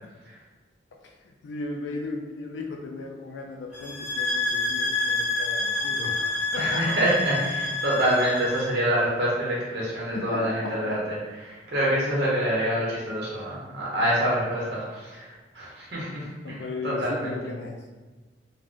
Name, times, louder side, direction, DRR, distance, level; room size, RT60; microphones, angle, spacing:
voice 1, 0.9-6.9 10.1-11.1 16.4-17.9, left 3 dB, 85° left, 1 dB, 0.3 m, -36 dB
sound 1, 3.7-8.8, left 3 dB, 10° right, 1.1 m, -28 dB
voice 2, 6.6-11.2 11.4-16.6 16.8-17.3, right 1 dB, 65° right, -6 dB, 0.8 m, -26 dB
3.4 x 2.1 x 2.5 m, 1.2 s
head